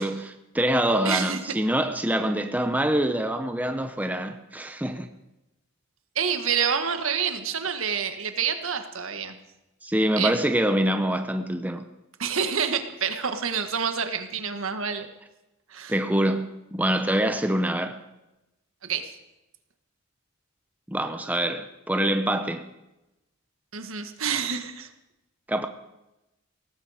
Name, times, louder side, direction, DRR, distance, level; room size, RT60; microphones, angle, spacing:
voice 1, 0.0-5.1 9.8-11.9 15.9-18.0 20.9-22.6 25.5-25.7, right 1 dB, 5° right, 0.7 m, -25 dB
voice 2, 1.0-1.4 6.1-9.4 10.2-10.3 12.2-15.1 15.7-15.9 18.8-19.1 23.7-24.9, right 7 dB, 75° right, 1.5 m, -28 dB
18.0 x 15.5 x 5.0 m
head